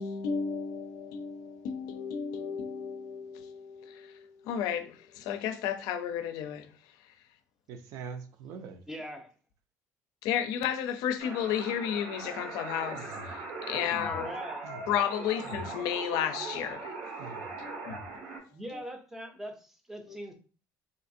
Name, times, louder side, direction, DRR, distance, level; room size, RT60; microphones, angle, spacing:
voice 1, 0.0-6.7 10.2-14.3 14.9-17.0 17.6-18.0 18.7-18.8 20.1-20.2, left 8 dB, 90° left, 0.4 m, -33 dB
voice 2, 7.7-8.8 12.9-13.5 14.6-14.8 17.2-17.5, right 5 dB, 60° right, 0.4 m, -44 dB
voice 3, 8.9-9.3 14.0-14.7 18.5-20.3, equal, 5° right, 0.5 m, -41 dB
sound 1, 11.2-18.4, right 3 dB, 85° right, 1.1 m, -40 dB
3.8 x 2.5 x 2.6 m
cardioid pair, 180°, 6 cm